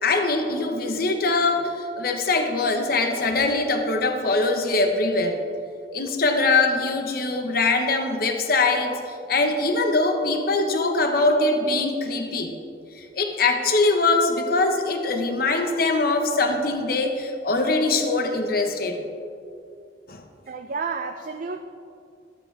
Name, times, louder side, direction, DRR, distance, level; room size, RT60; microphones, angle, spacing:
voice 1, 0.0-5.4 5.9-8.9 9.3-12.6 12.9-19.0 20.1-20.2, left 3 dB, 60° left, 5 dB, 1.1 m, -22 dB
voice 2, 20.5-21.6, right 4 dB, 50° right, 6 dB, 0.4 m, -30 dB
13.0 x 13.0 x 3.4 m, 2.5 s
head